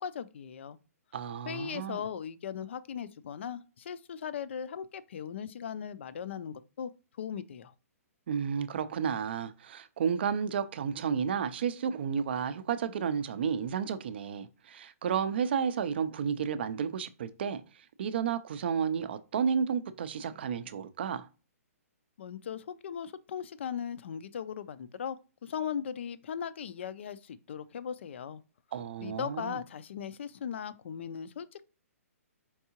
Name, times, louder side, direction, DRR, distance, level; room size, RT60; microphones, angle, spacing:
voice 1, 0.0-0.8 1.5-6.9 7.2-7.7 22.2-25.2 25.4-28.4 29.0-31.6, left 8 dB, 50° left, 0.4 m, -38 dB
voice 2, 1.1-2.0 8.3-17.6 18.0-21.3 28.7-29.6, right 7 dB, 45° right, 0.4 m, -32 dB
4.6 x 3.5 x 2.8 m
hypercardioid pair, 170°, 8 cm